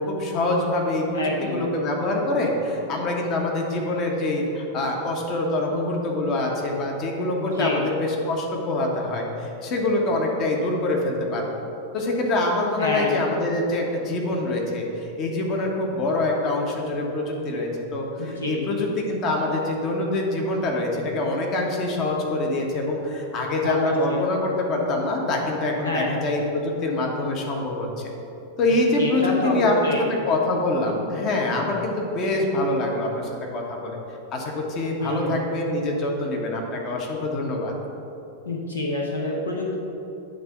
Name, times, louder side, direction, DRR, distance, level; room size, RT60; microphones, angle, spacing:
voice 1, 0.0-11.6 11.9-28.1 28.6-34.0 34.3-37.7, left 2 dB, 35° left, 0 dB, 1.2 m, -25 dB
voice 2, 1.1-1.7 7.4-7.8 12.8-13.1 18.2-18.7 23.6-24.2 25.8-26.1 29.0-30.1 35.0-35.3 38.4-39.8, left 2 dB, 75° left, -1 dB, 0.9 m, -27 dB
9.2 x 3.7 x 5.8 m, 2.9 s
figure-of-eight pair, 90°, 0 cm